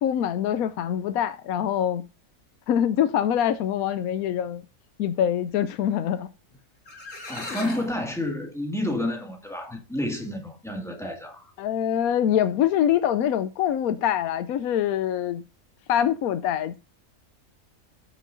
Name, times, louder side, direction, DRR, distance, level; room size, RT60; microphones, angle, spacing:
voice 1, 0.0-2.0 2.7-4.6 5.0-6.3 7.4-7.6 11.6-15.4 15.9-16.8, left 10 dB, 80° left, 1.1 m, -24 dB
sound 1, 6.5-6.6 6.9-8.0, left 2 dB, 60° left, 2.9 m, -36 dB
voice 2, 7.3-11.5, left 1 dB, ahead, 1.9 m, -30 dB
14.0 x 6.5 x 2.6 m
omnidirectional pair, 1.5 m